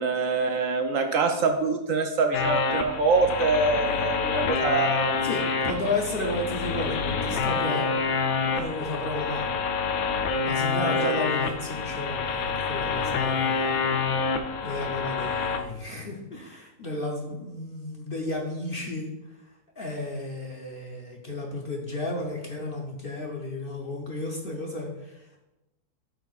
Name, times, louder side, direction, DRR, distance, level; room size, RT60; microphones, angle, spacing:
voice 1, 0.0-5.1 10.8-11.1, right 4 dB, 65° right, 4 dB, 1.0 m, -25 dB
sound 1, 2.3-15.6, left 5 dB, 70° left, 1.0 m, -27 dB
voice 2, 5.2-7.9 8.5-9.5 10.4-13.8 14.6-19.1 19.8-25.4, left 2 dB, 45° left, 0 dB, 0.8 m, -33 dB
12.0 x 4.6 x 2.4 m, 0.96 s
omnidirectional pair, 1.7 m